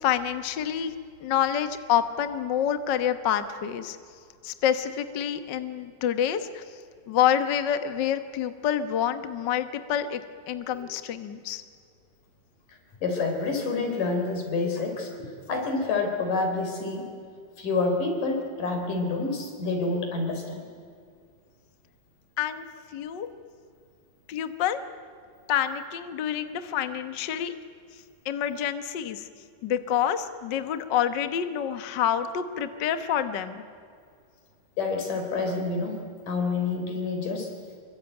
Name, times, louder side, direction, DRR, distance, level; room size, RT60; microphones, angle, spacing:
voice 1, 0.0-0.9 1.2-4.0 4.4-6.6 7.1-10.2 10.5-11.6 22.4-22.7 22.9-23.3 24.3-24.8 25.5-27.5 28.2-29.3 29.6-33.6, left 9 dB, 90° left, 10 dB, 0.9 m, -27 dB
voice 2, 13.0-17.1 17.6-20.7 34.8-37.5, left 3 dB, 65° left, 4 dB, 5.4 m, -28 dB
26.0 x 23.5 x 9.1 m, 2.2 s
omnidirectional pair, 4.1 m